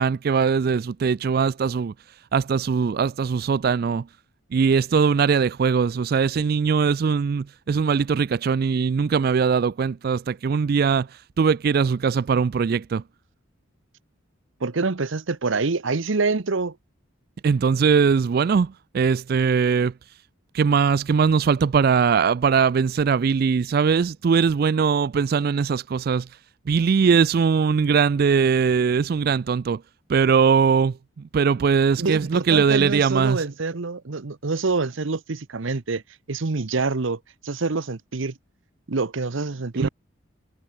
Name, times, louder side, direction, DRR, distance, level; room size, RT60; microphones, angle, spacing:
voice 1, 0.0-1.9 2.3-4.0 4.5-13.0 17.4-19.9 20.5-26.3 26.7-29.8 30.1-31.0 31.3-33.5 39.7-39.9, right 6 dB, 45° right, 0.3 m, -21 dB
voice 2, 14.6-16.8 32.0-36.0 36.3-38.3 38.9-39.9, right 3 dB, 70° right, 0.9 m, -26 dB
head